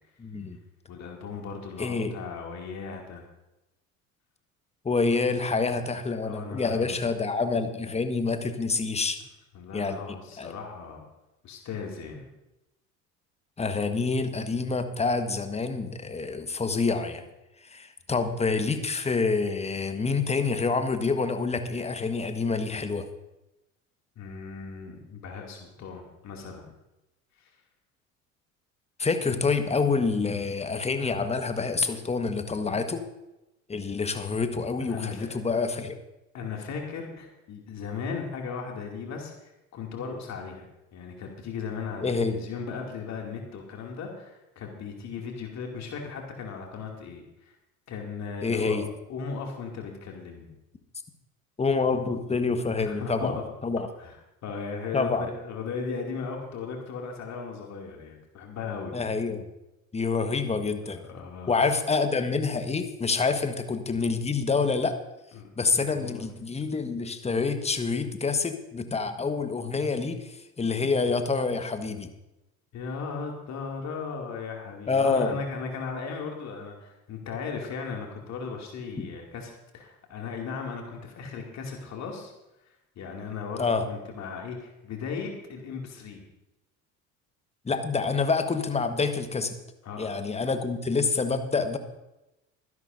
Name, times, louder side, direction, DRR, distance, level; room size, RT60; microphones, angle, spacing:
voice 1, 0.2-0.6 1.8-2.1 4.8-9.2 9.7-10.5 13.6-17.2 17.6-23.1 29.0-33.0 33.7-36.0 42.0-42.4 48.4-48.8 51.6-53.9 54.9-55.3 58.9-59.5 59.9-61.0 61.5-65.0 65.6-72.1 74.9-75.4 79.0-79.1 83.6-83.8 87.6-89.5 90.0-91.8, left 4 dB, 15° left, 8 dB, 1.4 m, -27 dB
voice 2, 0.9-3.2 5.1-5.2 5.7-7.0 9.5-11.1 11.4-12.3 24.2-26.7 27.4-27.5 34.8-35.4 36.3-40.7 40.9-47.5 47.9-48.8 49.1-50.5 52.8-53.3 54.0-54.1 54.4-58.9 61.0-61.6 65.3-65.5 65.8-66.3 72.7-82.3 83.0-86.2 89.8-90.5, left 5 dB, 40° left, 1 dB, 2.5 m, -37 dB
24.0 x 11.0 x 2.6 m, 0.94 s
figure-of-eight pair, 65°, 41 cm